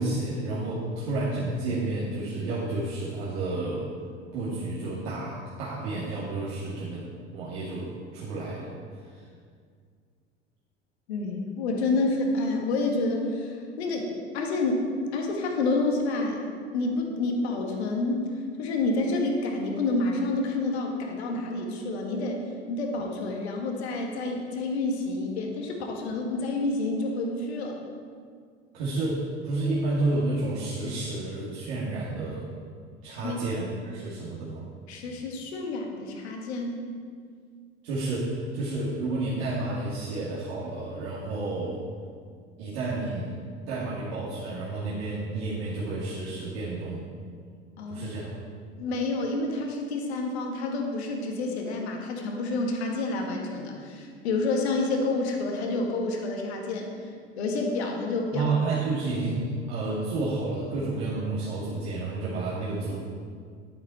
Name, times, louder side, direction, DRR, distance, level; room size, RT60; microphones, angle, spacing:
voice 1, 0.0-3.9 4.3-8.7 9.0-9.3 28.7-32.5 33.0-34.7 37.8-41.8 42.6-43.3 43.7-47.1 47.9-48.4 58.3-63.0, right 2 dB, 60° right, -8 dB, 2.3 m, -30 dB
voice 2, 11.1-16.4 16.7-22.4 22.7-27.8 33.2-33.4 34.9-36.8 47.8-48.1 48.8-57.1 57.4-58.5, left 2 dB, 65° left, 1 dB, 1.8 m, -29 dB
11.0 x 8.8 x 4.4 m, 2.1 s
figure-of-eight pair, 70°, 34 cm